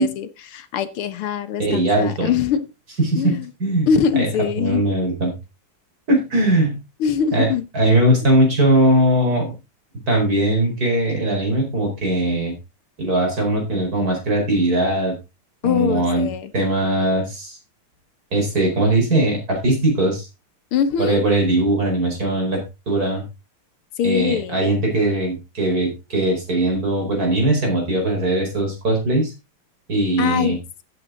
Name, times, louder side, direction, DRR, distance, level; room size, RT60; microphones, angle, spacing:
voice 1, 0.0-2.6 3.2-3.5 3.9-4.8 7.0-7.7 15.6-16.5 20.7-21.2 24.0-24.6 30.2-30.6, left 7 dB, 80° left, 11 dB, 2.0 m, -22 dB
voice 2, 1.6-2.3 3.0-4.3 4.6-5.3 6.1-6.8 7.3-7.5 7.7-9.5 10.1-12.5 13.0-15.1 15.6-16.3 16.5-17.6 18.3-20.3 21.0-22.6 22.9-23.2 24.0-29.3 29.9-30.6, right 1 dB, 40° right, 1 dB, 5.2 m, -20 dB
12.0 x 8.6 x 3.8 m, 0.26 s
omnidirectional pair, 2.4 m